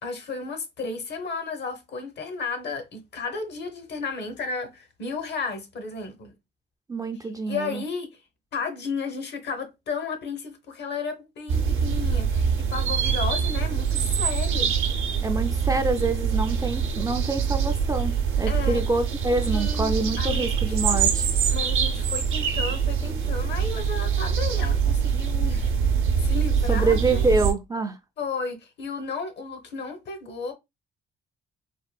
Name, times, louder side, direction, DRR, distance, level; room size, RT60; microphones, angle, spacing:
voice 1, 0.0-6.3 7.5-8.1 8.5-14.8 18.5-18.8 19.5-20.5 21.5-27.3 28.2-30.5, left 4 dB, 60° left, 0.9 m, -33 dB
voice 2, 6.9-7.8 15.2-21.3 26.7-28.0, right 3 dB, 20° right, 0.3 m, -26 dB
sound 1, 11.5-27.5, right 6 dB, 80° right, 0.7 m, -24 dB
3.6 x 2.2 x 2.2 m
cardioid pair, 90°, 20 cm